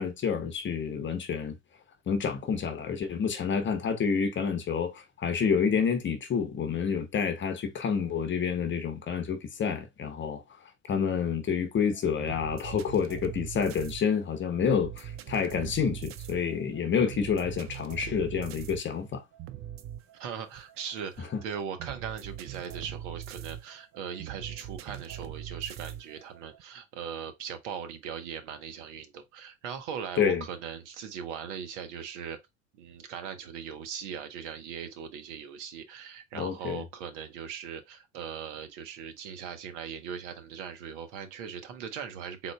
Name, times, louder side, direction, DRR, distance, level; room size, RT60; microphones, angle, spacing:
voice 1, 0.0-1.6 2.1-10.4 10.9-19.2 30.2-30.4 36.3-36.8, left 6 dB, 30° left, 0.9 m, -28 dB
sound 1, 11.9-26.6, right 11 dB, 35° right, 0.5 m, -42 dB
voice 2, 20.2-32.4 32.8-42.5, right 7 dB, 65° right, 1.1 m, -39 dB
3.8 x 3.7 x 2.3 m
hypercardioid pair, 80°, 38 cm